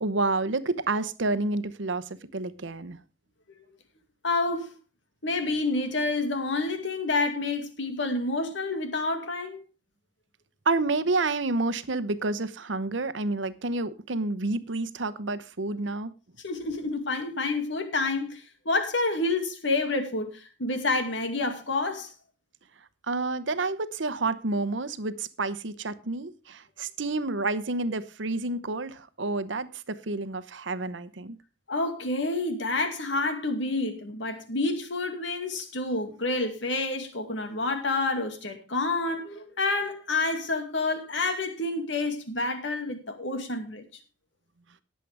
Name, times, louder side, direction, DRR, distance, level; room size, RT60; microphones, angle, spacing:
voice 1, 0.0-3.0 10.7-16.1 23.1-31.4, right 3 dB, 75° right, 0.9 m, -29 dB
voice 2, 4.2-4.7 5.2-9.6 16.4-22.1 31.7-43.8, left 3 dB, 75° left, 2.3 m, -28 dB
19.0 x 7.6 x 3.4 m
head